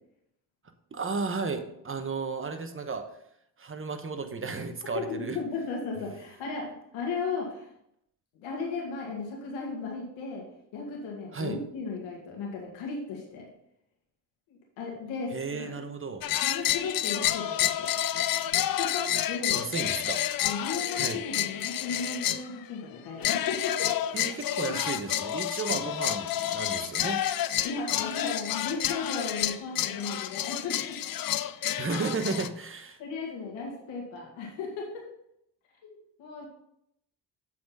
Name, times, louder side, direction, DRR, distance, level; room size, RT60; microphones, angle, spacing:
voice 1, 0.9-3.1 3.6-5.4 11.3-11.6 15.3-16.4 19.5-20.3 20.9-21.2 24.1-27.6 31.8-33.0, right 4 dB, 25° right, 7 dB, 1.1 m, -34 dB
voice 2, 4.9-6.7 6.9-7.7 8.4-10.4 10.7-13.5 14.5-15.7 16.4-17.9 18.8-19.6 20.4-23.9 24.3-24.4 27.6-31.0 31.5-31.8 33.0-34.9 35.8-36.5, left 4 dB, 85° left, -1 dB, 1.8 m, -35 dB
sound 1, 16.2-22.5 23.2-32.5, left 12 dB, 50° left, 0.6 m, -29 dB
7.5 x 4.2 x 5.4 m, 0.76 s
supercardioid pair, 60°, 45 cm